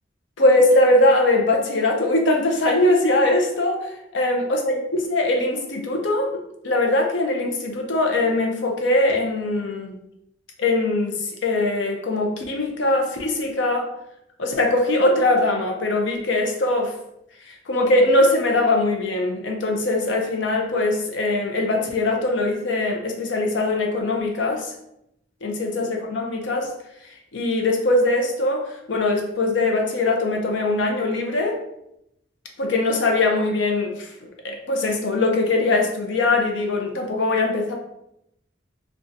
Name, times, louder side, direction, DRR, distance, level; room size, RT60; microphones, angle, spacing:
voice 1, 0.4-10.0 10.6-13.9 14.4-16.9 17.5-24.7 25.4-26.8 27.3-31.6 32.6-34.1 34.4-37.7, left 2 dB, 80° left, 2 dB, 0.6 m, -21 dB
3.9 x 2.3 x 2.5 m, 0.80 s
head